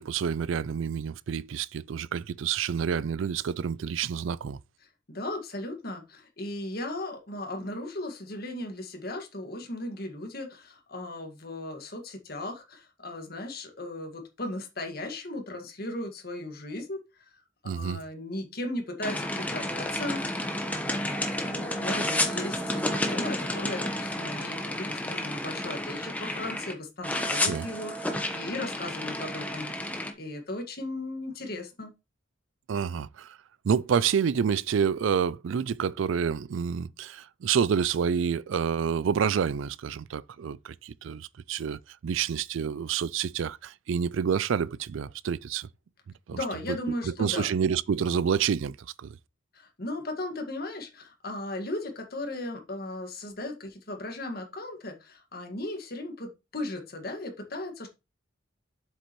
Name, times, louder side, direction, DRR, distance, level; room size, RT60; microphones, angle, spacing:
voice 1, 0.0-4.6 17.7-18.0 27.5-27.6 32.7-33.4 33.6-45.7 46.3-46.4 46.7-46.8 47.0-49.2, right 7 dB, 75° right, 0.4 m, -28 dB
voice 2, 5.1-17.3 17.6-29.7 30.2-31.9 46.3-47.5 49.5-57.9, left 1 dB, 50° left, 1.8 m, -37 dB
sound 1, 19.0-26.7 27.0-30.1, left 1 dB, 10° left, 1.0 m, -31 dB
7.8 x 6.7 x 3.1 m
head